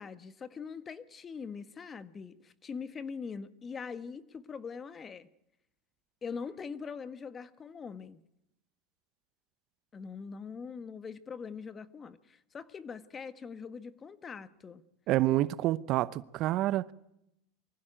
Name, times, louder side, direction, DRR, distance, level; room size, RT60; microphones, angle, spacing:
voice 1, 0.0-5.3 6.2-8.2 9.9-14.8, left 5 dB, 25° left, 1.6 m, -42 dB
voice 2, 15.1-16.9, right 15 dB, 50° right, 0.8 m, -28 dB
24.5 x 16.0 x 9.1 m
supercardioid pair, 115°, 0 cm